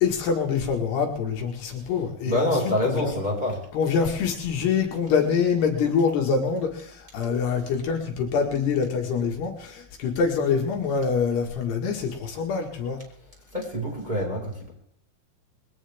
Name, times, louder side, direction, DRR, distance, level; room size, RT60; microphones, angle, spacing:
voice 1, 0.0-3.1 3.7-13.0, left 6 dB, 70° left, 1 dB, 3.9 m, -25 dB
voice 2, 2.2-3.6 13.5-14.7, left 1 dB, 10° right, -3 dB, 5.3 m, -26 dB
21.5 x 18.0 x 3.6 m, 0.71 s
omnidirectional pair, 5.1 m